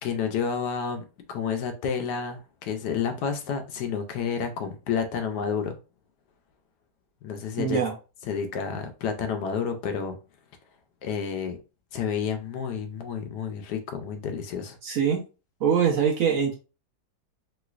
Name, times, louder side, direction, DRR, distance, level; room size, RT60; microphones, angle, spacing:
voice 1, 0.0-5.8 7.2-7.8 8.3-10.2 11.0-11.6 11.9-14.8, left 6 dB, 75° left, 1.1 m, -30 dB
voice 2, 7.6-7.9 14.8-15.2 15.6-16.5, right 7 dB, 65° right, 0.9 m, -23 dB
3.1 x 3.0 x 2.3 m
omnidirectional pair, 1.9 m